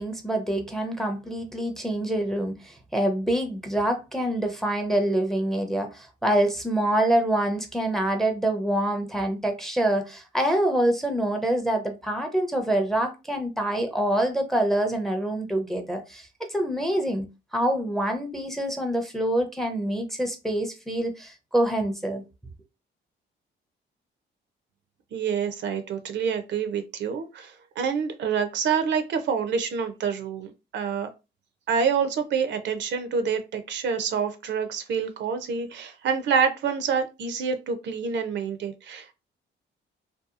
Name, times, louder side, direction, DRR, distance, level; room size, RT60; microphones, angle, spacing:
voice 1, 0.0-17.3 17.5-22.2, right 1 dB, ahead, 0.5 m, -26 dB
voice 2, 25.1-31.1 31.7-39.1, right 6 dB, 65° right, 0.5 m, -27 dB
2.7 x 2.2 x 2.4 m
cardioid pair, 90°, 20 cm